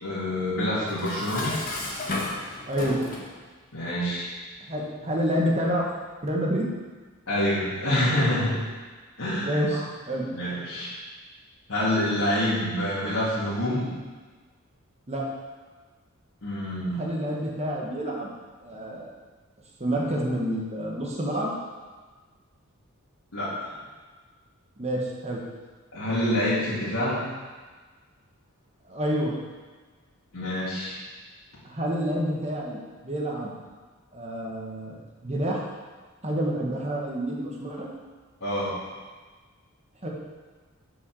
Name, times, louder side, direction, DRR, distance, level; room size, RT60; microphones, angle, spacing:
voice 1, 0.0-1.5 3.7-4.3 7.3-8.5 9.2-9.8 10.3-10.9 11.7-13.9 16.4-17.0 23.3-23.7 25.9-27.2 30.3-31.0 38.4-38.8, left 1 dB, 75° left, -11 dB, 2.9 m, -27 dB
Dishes pots and pans, 0.9-3.3, left 2 dB, 40° left, 1.4 m, -33 dB
voice 2, 2.7-3.0 4.7-5.9 6.2-6.7 9.4-9.8 10.1-10.3 15.1-15.3 16.9-18.3 18.6-19.1 19.8-21.5 24.8-25.4 28.9-29.4 31.6-33.6 34.1-35.6 36.2-37.9 40.0-40.1, equal, 30° right, -2 dB, 1.5 m, -28 dB
7.4 x 6.2 x 6.4 m, 1.4 s
head